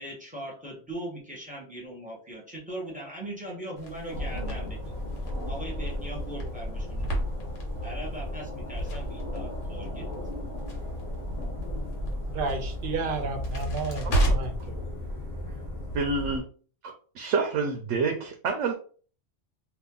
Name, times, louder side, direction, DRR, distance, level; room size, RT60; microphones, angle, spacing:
voice 1, 0.0-4.8 5.5-7.1 7.8-10.4, right 1 dB, 5° right, 1.1 m, -40 dB
Crackle, 3.8-14.7, right 1 dB, 80° left, 1.4 m, -34 dB
sound 1, 4.1-16.4, left 1 dB, 35° left, 1.0 m, -34 dB
voice 2, 12.3-14.5, right 4 dB, 55° right, 0.7 m, -32 dB
voice 3, 14.0-14.5 15.9-16.4 16.8-18.7, right 4 dB, 80° right, 0.9 m, -28 dB
2.7 x 2.5 x 3.7 m
omnidirectional pair, 1.3 m